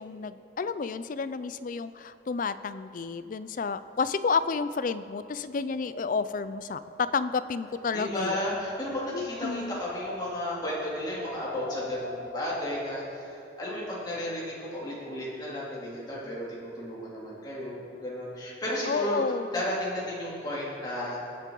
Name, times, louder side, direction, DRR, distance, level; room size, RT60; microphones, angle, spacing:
voice 1, 0.0-8.5 9.1-9.8 18.9-19.5, left 5 dB, 45° left, 14 dB, 0.4 m, -31 dB
Wind, 5.1-13.1, equal, 90° left, 2.8 m, -44 dB
voice 2, 7.9-19.2 19.5-21.2, left 1 dB, 20° left, -7 dB, 3.0 m, -33 dB
20.0 x 7.4 x 3.9 m, 2.9 s
head